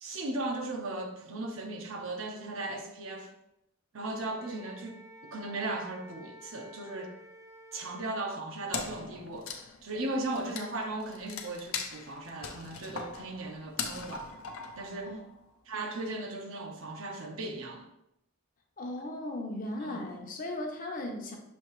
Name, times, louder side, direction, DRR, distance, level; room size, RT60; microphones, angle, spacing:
voice 1, 0.0-3.3 3.9-5.0 5.3-7.2 7.7-14.3 14.8-15.2 15.7-17.9 19.8-20.0, right 2 dB, 70° right, 0.7 m, -37 dB
Wind instrument woodwind instrument, 4.3-8.2, left 1 dB, 15° right, 0.4 m, -52 dB
Wood, 8.7-15.4, left 5 dB, 80° left, 0.5 m, -40 dB
voice 2, 18.8-21.4, left 1 dB, 40° left, 0.7 m, -37 dB
6.3 x 2.8 x 3.0 m
head